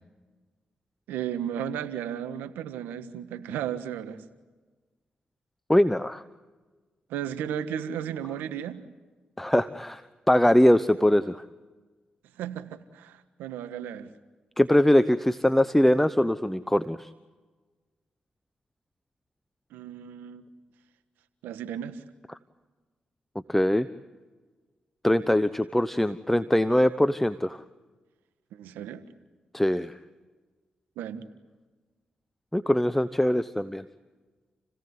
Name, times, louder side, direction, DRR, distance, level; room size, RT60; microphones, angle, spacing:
voice 1, 1.1-4.2 7.1-8.8 12.4-14.1 19.7-20.5 21.4-22.0 28.5-29.0 31.0-31.2, right 9 dB, 85° right, 11 dB, 1.4 m, -34 dB
voice 2, 5.7-6.2 9.4-10.0 10.3-11.4 14.6-17.1 23.5-23.9 25.0-27.6 29.5-29.9 32.5-33.8, left 1 dB, 5° left, 13 dB, 1.0 m, -22 dB
29.5 x 17.0 x 9.6 m, 1.3 s
supercardioid pair, 45°, 3 cm